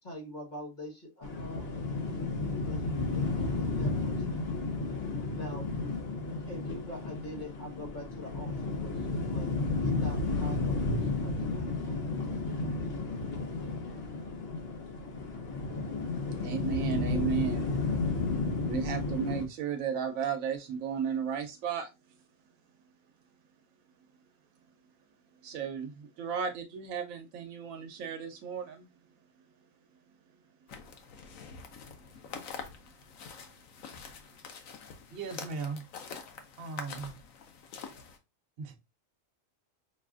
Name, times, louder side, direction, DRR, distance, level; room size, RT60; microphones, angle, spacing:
voice 1, 0.0-2.2 2.6-4.5 5.3-5.7 6.5-9.5 9.8-13.1, equal, 35° left, 1.5 m, -45 dB
sound 1, 1.2-19.5, left 3 dB, 50° left, 1.0 m, -32 dB
voice 2, 16.4-17.7 18.6-21.9 25.4-28.9, right 7 dB, 85° right, 1.0 m, -34 dB
sound 2, 30.7-38.2, left 6 dB, 85° left, 1.1 m, -46 dB
voice 3, 35.1-35.8 36.6-37.2 38.6-38.8, right 4 dB, 55° right, 0.9 m, -38 dB
6.1 x 2.4 x 2.4 m
omnidirectional pair, 1.4 m